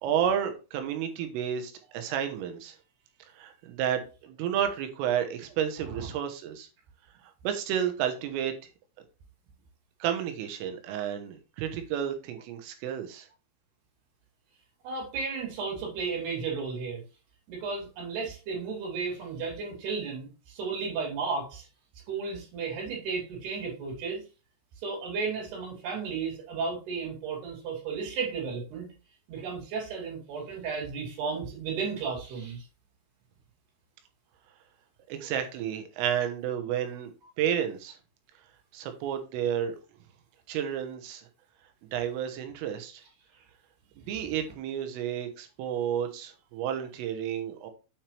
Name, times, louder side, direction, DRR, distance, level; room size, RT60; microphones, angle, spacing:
voice 1, 0.0-2.8 3.4-6.7 7.4-8.5 10.0-13.3 35.1-37.1 37.4-38.0 38.7-39.8 40.5-41.3 41.9-43.0 44.0-47.7, right 9 dB, 85° right, 6 dB, 3.8 m, -31 dB
voice 2, 14.8-17.0 17.5-21.7 22.1-24.2 24.8-28.9 29.3-32.6, right 5 dB, 55° right, -1 dB, 4.8 m, -34 dB
8.5 x 6.0 x 3.3 m, 0.32 s
omnidirectional pair, 5.8 m